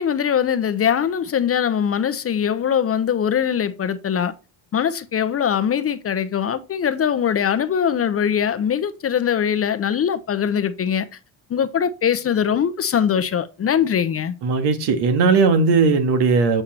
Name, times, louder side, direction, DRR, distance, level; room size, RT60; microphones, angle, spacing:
voice 1, 0.0-4.3 4.7-11.1 11.5-14.3, left 8 dB, 30° left, 0.8 m, -21 dB
voice 2, 14.4-16.6, right 4 dB, 60° right, 2.0 m, -17 dB
8.5 x 5.7 x 4.3 m
supercardioid pair, 105°, 45 cm